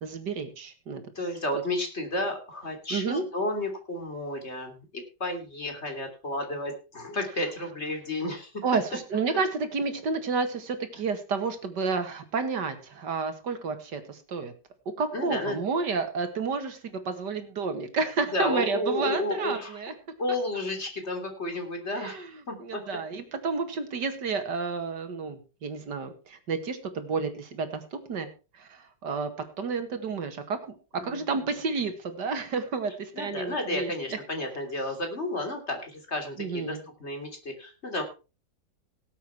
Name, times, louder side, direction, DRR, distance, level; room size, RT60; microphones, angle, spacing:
voice 1, 0.0-1.0 2.9-3.3 8.6-14.5 15.0-19.9 21.9-28.3 28.5-29.3 29.6-30.8 31.0-33.9 36.4-36.8, right 4 dB, 70° right, 8 dB, 2.4 m, -31 dB
voice 2, 1.1-8.5 15.1-15.6 18.3-19.8 20.2-22.8 31.0-31.2 33.1-38.0, left 1 dB, 35° left, 5 dB, 3.3 m, -32 dB
17.5 x 8.3 x 4.6 m, 0.32 s
omnidirectional pair, 1.9 m